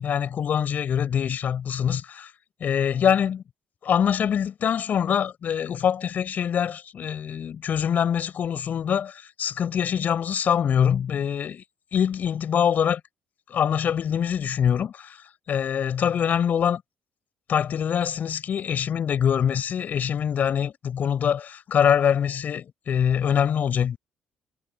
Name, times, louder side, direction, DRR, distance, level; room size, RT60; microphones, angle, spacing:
voice 1, 0.0-2.3 2.6-3.4 3.8-11.6 11.9-13.0 13.5-15.2 15.5-16.8 17.5-24.0, left 8 dB, 50° left, 5.6 m, -24 dB
hypercardioid pair, 50°, 4 cm